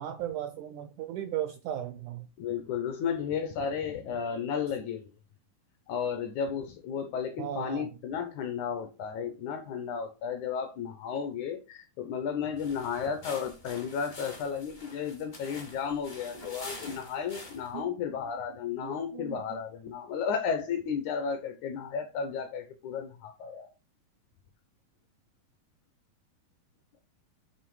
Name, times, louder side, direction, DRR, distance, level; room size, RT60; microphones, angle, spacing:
voice 1, 0.0-2.3 7.4-7.9 17.7-17.8 18.8-19.6, right 11 dB, 85° right, 1.7 m, -36 dB
voice 2, 2.4-5.1 5.9-23.7, left 7 dB, 75° left, 1.8 m, -33 dB
sound 1, 12.5-17.8, left 2 dB, 50° left, 0.5 m, -46 dB
9.0 x 3.4 x 4.7 m
omnidirectional pair, 4.1 m